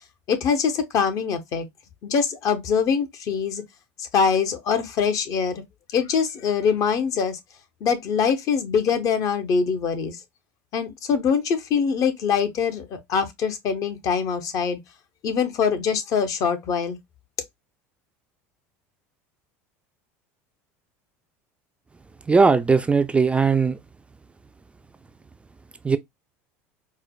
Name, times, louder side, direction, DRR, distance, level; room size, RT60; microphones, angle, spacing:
voice 1, 0.3-1.7 2.0-3.6 4.0-5.6 5.9-7.4 7.8-10.2 10.7-14.8 15.2-17.0, left 6 dB, 50° left, 0.8 m, -23 dB
voice 2, 22.3-23.8 25.8-26.0, right 4 dB, 15° right, 0.3 m, -18 dB
4.4 x 2.1 x 2.2 m
supercardioid pair, 100°, 7 cm